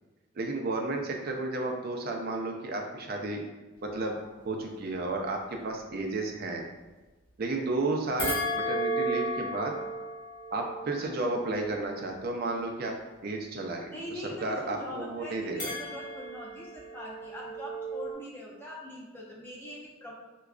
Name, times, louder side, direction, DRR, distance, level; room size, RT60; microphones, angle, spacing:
voice 1, 0.4-3.4 3.8-4.2 4.4-6.6 7.4-9.7 10.5-12.9 13.2-13.9 14.4-15.7, right 2 dB, 45° right, 2 dB, 0.4 m, -32 dB
sound 1, 8.2-12.7 15.6-18.1, right 1 dB, 60° left, 1.5 m, -34 dB
voice 2, 13.9-20.1, left 1 dB, 10° left, -4 dB, 0.6 m, -42 dB
4.7 x 2.2 x 2.3 m, 1.2 s
head